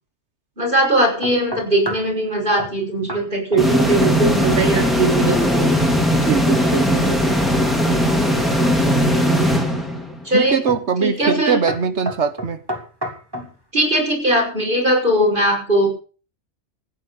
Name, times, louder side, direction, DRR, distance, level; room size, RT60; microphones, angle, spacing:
voice 1, 0.6-5.7 9.2-9.4 10.2-10.6 11.0-11.6 13.3-13.5 13.7-15.9, right 1 dB, 45° right, 6.7 m, -19 dB
sound 1, 1.2-2.1 2.6-2.8 3.1-3.3 3.5-4.2 4.5-4.9 8.2-8.9 9.5-9.9 10.7-10.9 11.2-11.4 11.7-13.5, equal, 20° right, 3.1 m, -31 dB
sound 2, 3.6-10.3, equal, ahead, 3.0 m, -18 dB
voice 2, 6.2-7.5 10.3-12.6, right 6 dB, 70° right, 1.3 m, -22 dB
15.5 x 10.0 x 7.1 m
omnidirectional pair, 1.2 m